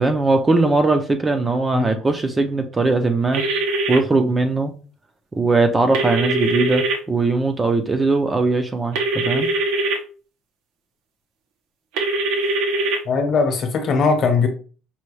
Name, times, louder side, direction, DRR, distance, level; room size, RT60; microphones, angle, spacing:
voice 1, 0.0-3.4 3.9-4.7 5.3-9.5, right 3 dB, 15° right, 6 dB, 0.4 m, -20 dB
sound 1, 3.3-4.0 5.9-7.0 8.9-10.0 12.0-13.0, right 2 dB, 85° right, 0.8 m, -22 dB
voice 2, 13.0-14.5, left 4 dB, 45° left, 5 dB, 0.9 m, -19 dB
5.5 x 2.2 x 3.1 m, 0.38 s
cardioid pair, 150°, 0 cm